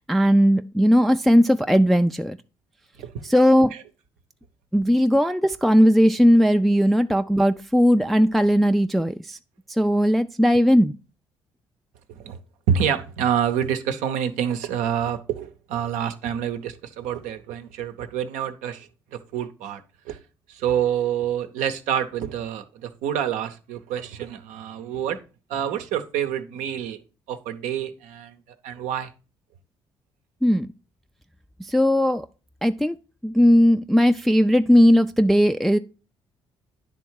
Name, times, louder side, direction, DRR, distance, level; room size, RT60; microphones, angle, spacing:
voice 1, 0.1-2.4 3.3-3.7 4.7-9.4 9.8-10.9 30.4-30.7 31.7-32.3 32.6-32.9 33.2-35.8, equal, ahead, 0.4 m, -18 dB
voice 2, 12.7-20.2 20.5-25.2 25.5-27.0 27.3-28.4 28.6-29.1, right 9 dB, 70° right, 0.7 m, -27 dB
10.0 x 3.5 x 4.6 m
hypercardioid pair, 50°, 13 cm